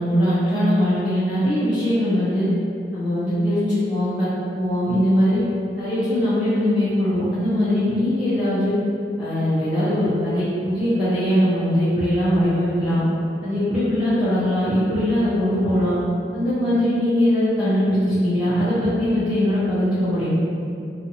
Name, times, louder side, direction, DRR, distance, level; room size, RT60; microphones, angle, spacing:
voice 1, 0.0-2.5 2.9-4.3 4.5-5.4 5.8-8.7 9.2-13.0 13.4-16.0 16.3-20.3, equal, 5° right, -16 dB, 0.6 m, -21 dB
2.6 x 2.4 x 2.7 m, 2.5 s
head